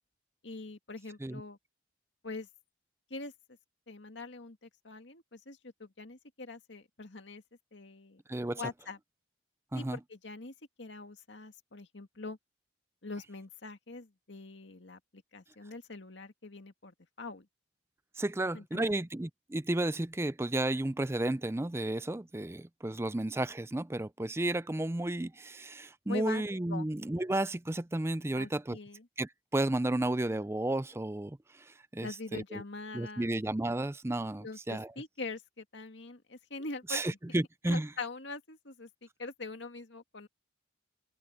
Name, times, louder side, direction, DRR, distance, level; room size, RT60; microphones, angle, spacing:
voice 1, 0.4-1.6 2.2-2.5 3.1-3.3 3.9-7.4 7.7-8.2 8.6-9.0 9.7-12.4 13.0-17.5 18.4-19.0 26.1-26.4 26.7-26.9 28.3-29.1 32.0-33.3 34.4-37.0 37.3-37.4 37.7-38.9 39.2-40.3, left 3 dB, 75° left, 2.1 m, -43 dB
voice 2, 8.3-8.6 9.7-10.0 18.2-28.8 29.2-31.4 31.9-32.6 32.9-34.9 36.9-37.9, right 1 dB, 15° right, 0.4 m, -32 dB
head